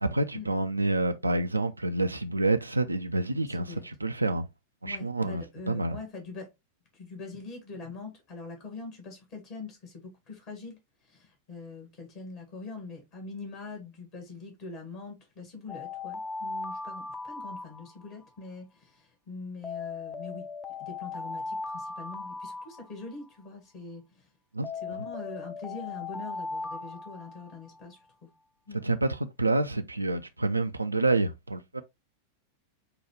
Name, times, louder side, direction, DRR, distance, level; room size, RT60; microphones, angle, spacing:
voice 1, 0.0-4.5 4.8-6.0 24.5-25.0 28.7-31.8, right 2 dB, 85° right, 0.3 m, -28 dB
voice 2, 4.8-6.5 6.9-10.8 11.1-20.5 20.8-24.2 24.8-28.3 28.7-28.8, left 3 dB, 45° left, 1.6 m, -43 dB
Alarm, 15.7-18.3 19.6-23.3 24.6-27.9, left 4 dB, 15° left, 0.5 m, -38 dB
5.8 x 2.3 x 3.1 m
figure-of-eight pair, 90°, 0 cm